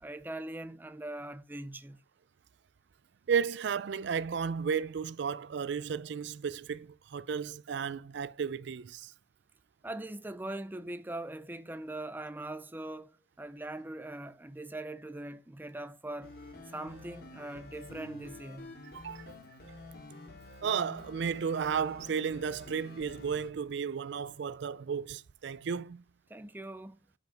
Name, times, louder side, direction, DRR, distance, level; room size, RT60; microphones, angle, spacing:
voice 1, 0.0-2.0 9.8-16.3 16.7-18.7 26.3-27.0, right 1 dB, 10° right, 0.5 m, -41 dB
voice 2, 3.3-9.1 18.9-19.4 19.7-19.8 20.6-26.0, right 6 dB, 65° right, 0.4 m, -33 dB
sound 1, 16.2-23.5, left 2 dB, 55° left, 2.5 m, -49 dB
9.2 x 5.2 x 5.1 m
head